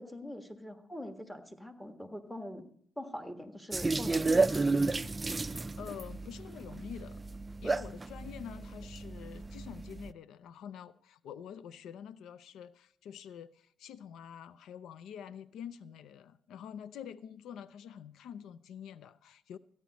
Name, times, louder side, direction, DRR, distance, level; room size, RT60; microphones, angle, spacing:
voice 1, 0.0-2.6 3.0-4.7, left 1 dB, 5° left, 6 dB, 1.5 m, -43 dB
sound 1, 3.7-10.1, right 3 dB, 20° right, 0.4 m, -32 dB
voice 2, 5.8-7.2 7.6-19.6, left 8 dB, 80° left, 16 dB, 0.4 m, -47 dB
14.5 x 10.5 x 4.1 m, 0.62 s
cardioid pair, 90°, 0 cm